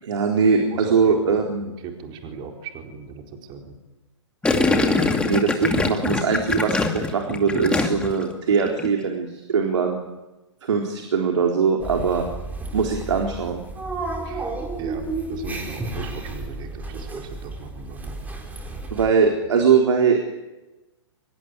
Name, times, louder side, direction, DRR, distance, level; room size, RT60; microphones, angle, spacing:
voice 1, 0.0-1.7 4.9-10.0 10.6-12.3 12.7-13.6 18.9-20.2, right 5 dB, 75° right, 2 dB, 4.0 m, -21 dB
voice 2, 0.7-3.8 14.2-14.5 14.8-15.0 15.3-18.1, right 5 dB, 30° right, 2 dB, 4.5 m, -38 dB
Gurgling, 4.4-8.2 8.5-8.9, left 3 dB, 5° left, 2.4 m, -22 dB
sound 1, 11.8-19.1, right 2 dB, 10° right, 4.2 m, -32 dB
25.0 x 21.5 x 9.7 m, 1.1 s
hypercardioid pair, 135°, 16 cm